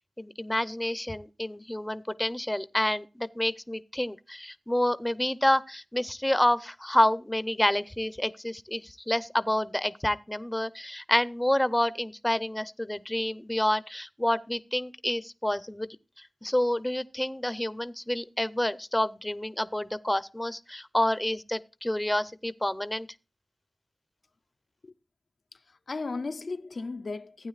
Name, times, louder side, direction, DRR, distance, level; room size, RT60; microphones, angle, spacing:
voice 1, 0.2-15.9 16.4-23.1, left 1 dB, 15° left, 0.5 m, -28 dB
voice 2, 25.5-27.5, left 3 dB, 75° left, 0.5 m, -36 dB
15.0 x 9.2 x 2.4 m
wide cardioid pair, 50°, 0 cm